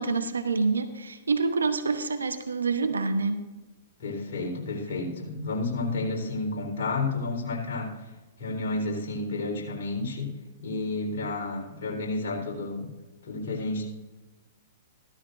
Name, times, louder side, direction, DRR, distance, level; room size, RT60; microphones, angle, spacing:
voice 1, 0.0-3.4, right 4 dB, 85° right, 9 dB, 1.0 m, -27 dB
voice 2, 4.0-8.1 8.4-10.3 10.6-12.9 13.2-13.9, left 2 dB, 60° left, -2 dB, 4.1 m, -31 dB
15.0 x 13.5 x 2.7 m, 1.1 s
hypercardioid pair, 115°, 0 cm